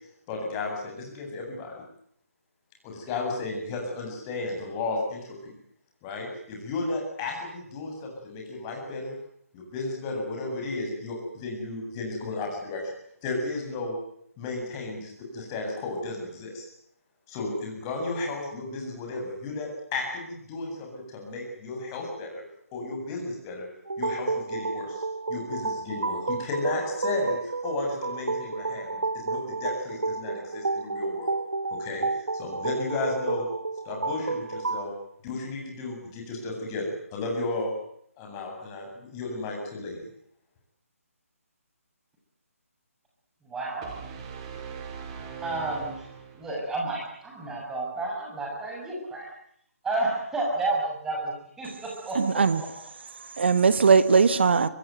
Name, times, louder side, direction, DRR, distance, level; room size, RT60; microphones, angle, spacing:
voice 1, 0.3-1.8 2.8-5.6 6.0-9.1 9.5-12.9 13.2-13.9 14.4-16.7 17.3-22.4 22.7-23.7 24.0-31.3 31.7-33.4 33.8-34.9 35.2-37.7 38.2-40.0, left 2 dB, 20° left, 1 dB, 7.9 m, -33 dB
sound 1, 23.9-34.9, right 3 dB, 65° right, 1.3 m, -31 dB
voice 2, 43.4-43.9 45.4-46.0 46.4-49.3 49.8-52.4, right 2 dB, 5° right, -2 dB, 7.3 m, -31 dB
sound 2, 43.8-46.7, right 7 dB, 25° right, 4.4 m, -40 dB
voice 3, 52.1-52.6 53.2-54.7, right 5 dB, 45° right, 14 dB, 1.5 m, -20 dB
25.0 x 21.0 x 9.4 m, 0.70 s
figure-of-eight pair, 145°, 8 cm